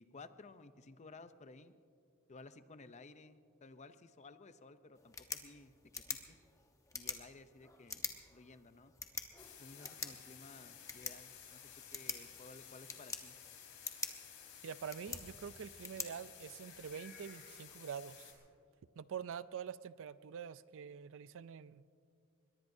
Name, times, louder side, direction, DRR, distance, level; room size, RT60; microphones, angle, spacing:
voice 1, 0.0-1.7 2.3-5.7 6.1-6.4 6.9-8.9 9.6-13.3, left 3 dB, 30° left, 11 dB, 0.6 m, -56 dB
sound 1, 4.9-16.9, left 4 dB, 15° left, 1.0 m, -47 dB
sound 2, 9.4-18.3, left 8 dB, 80° left, 3.6 m, -55 dB
voice 2, 14.6-18.3 19.0-21.8, right 7 dB, 60° right, 16 dB, 0.4 m, -46 dB
23.0 x 21.0 x 2.7 m, 2.4 s
head